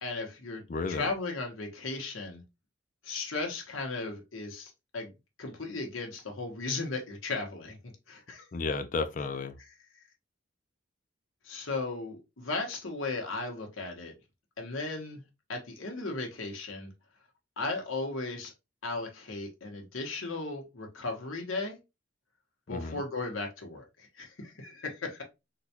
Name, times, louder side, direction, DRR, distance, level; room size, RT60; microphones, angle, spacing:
voice 1, 0.0-0.6 0.9-2.4 3.0-5.1 5.4-8.5 11.4-14.1 14.6-15.2 15.5-16.9 17.6-18.5 18.8-21.8 22.7-25.2, left 3 dB, 85° left, 1.0 m, -36 dB
voice 2, 0.7-1.1 8.5-9.6 22.7-23.0, left 4 dB, 40° left, 0.4 m, -33 dB
3.9 x 2.2 x 2.8 m
head